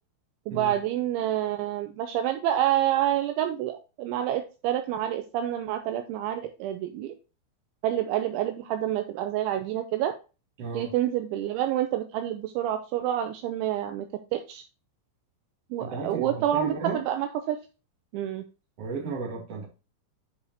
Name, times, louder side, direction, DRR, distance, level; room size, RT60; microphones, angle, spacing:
voice 1, 0.5-7.1 7.8-10.1 10.7-14.1 14.3-14.6 15.7-17.6 18.1-18.4, right 12 dB, 85° right, 7 dB, 2.7 m, -28 dB
voice 2, 10.6-10.9 15.8-17.0 18.8-19.7, right 4 dB, 40° right, -3 dB, 2.5 m, -34 dB
10.0 x 4.9 x 2.7 m, 0.30 s
omnidirectional pair, 5.9 m